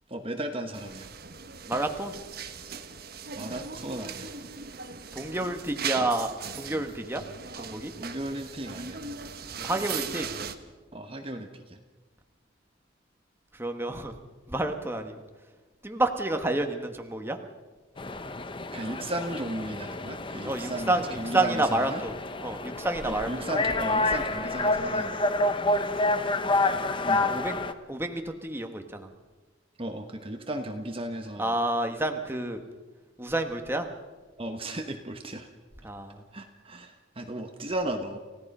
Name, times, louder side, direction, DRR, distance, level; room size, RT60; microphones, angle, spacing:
voice 1, 0.1-1.1 3.4-4.3 8.0-9.0 10.9-11.8 18.7-22.0 23.0-25.2 27.0-27.4 29.8-31.6 34.4-35.5 36.3-38.2, right 1 dB, 30° right, 5 dB, 1.2 m, -35 dB
sound 1, 0.7-10.5, right 6 dB, 55° right, 1.3 m, -38 dB
voice 2, 1.7-2.1 5.1-7.2 7.5-7.9 9.6-10.2 13.5-14.1 14.5-15.2 15.8-17.4 20.4-23.5 27.2-27.6 27.9-29.1 31.4-32.6 33.2-33.9 35.8-36.2, right 2 dB, 10° right, 5 dB, 1.4 m, -29 dB
sound 2, 18.0-27.7, left 2 dB, 25° left, 0.9 m, -29 dB
29.5 x 16.5 x 5.5 m, 1.3 s
head